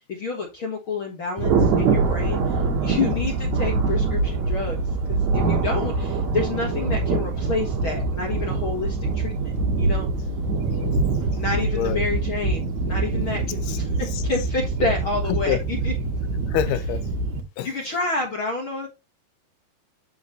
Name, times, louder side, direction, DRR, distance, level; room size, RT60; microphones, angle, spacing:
voice 1, 0.1-4.8 5.1-10.1 11.4-15.9 17.6-18.9, left 4 dB, 50° left, 1.7 m, -29 dB
Thunder, 1.4-17.4, right 4 dB, 55° right, 2.6 m, -24 dB
voice 2, 2.5-2.8 10.7-11.0 11.7-12.1 13.2-13.3 13.7-13.8 14.1-14.2 15.3-15.6 16.5-17.0 17.6-17.7, left 9 dB, 85° left, 2.8 m, -28 dB
8.6 x 6.4 x 3.0 m
omnidirectional pair, 4.5 m